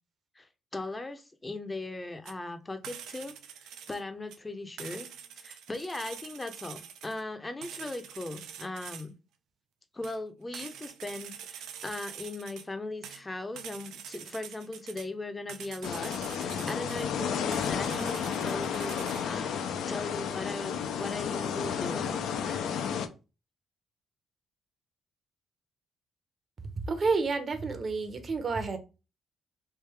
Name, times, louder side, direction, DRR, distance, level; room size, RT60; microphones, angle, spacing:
voice 1, 0.4-3.4 3.9-5.1 5.4-9.1 9.9-19.6 19.9-22.7, left 2 dB, 20° left, 0.6 m, -39 dB
sound 1, 2.3-2.4 2.8-4.0 4.3-4.4 4.8-7.2 7.6-9.1 10.0-10.2 10.5-12.7 13.0-15.1 15.5-17.0 17.5-19.2, right 9 dB, 90° right, 0.5 m, -45 dB
sound 2, 15.8-23.1, left 7 dB, 75° left, 0.5 m, -32 dB
voice 2, 26.9-28.8, right 4 dB, 45° right, 0.8 m, -29 dB
3.2 x 2.6 x 3.4 m
cardioid pair, 90°, 0 cm